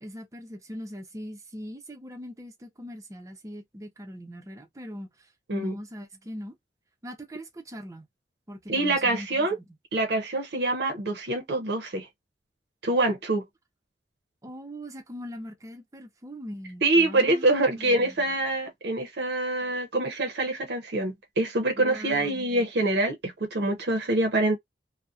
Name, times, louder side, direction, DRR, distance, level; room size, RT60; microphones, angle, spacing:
voice 1, 0.0-6.6 7.0-8.1 8.5-9.7 14.4-18.1 21.7-22.5, equal, 20° right, 0.5 m, -40 dB
voice 2, 8.7-9.6 9.9-12.1 12.8-13.4 16.8-24.6, right 2 dB, 70° right, 0.6 m, -25 dB
2.6 x 2.0 x 2.3 m
head